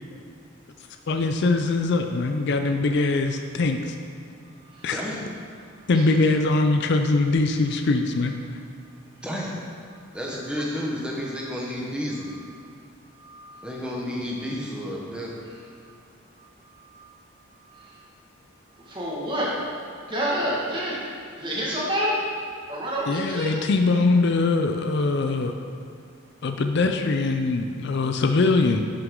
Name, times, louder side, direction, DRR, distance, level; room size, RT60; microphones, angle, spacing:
voice 1, 1.1-4.0 4.8-5.0 5.9-8.3 23.1-25.5 26.4-28.8, left 3 dB, 50° left, 5 dB, 0.4 m, -22 dB
voice 2, 4.4-4.9 5.6-6.1 8.8-9.3 9.9-10.2 11.2-11.5 12.1-12.6 13.1-13.7 15.4-15.9 16.4-17.0 17.5-18.0 18.7-21.1 21.4-22.2 22.7-23.6, equal, 20° right, -6 dB, 1.7 m, -31 dB
voice 3, 9.2-9.6 10.1-12.3 13.6-15.3, equal, 5° right, -3 dB, 1.1 m, -31 dB
11.0 x 6.1 x 3.8 m, 2.4 s
head